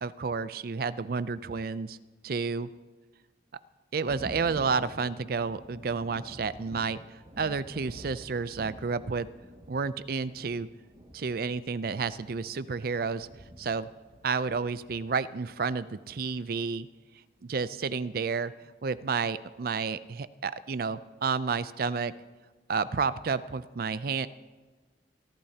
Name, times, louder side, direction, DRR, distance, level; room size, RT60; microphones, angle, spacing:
voice 1, 0.0-2.0 2.2-2.7 3.9-7.0 7.4-9.3 9.7-10.7 11.1-13.3 13.6-13.9 14.2-16.9 17.4-18.5 18.8-22.1 22.7-24.3, right 5 dB, 55° right, 15 dB, 0.4 m, -30 dB
Thunder, 4.1-15.5 16.8-16.9 17.4-17.5, equal, 35° right, 1.9 m, -48 dB
24.5 x 12.0 x 2.9 m, 1.3 s
head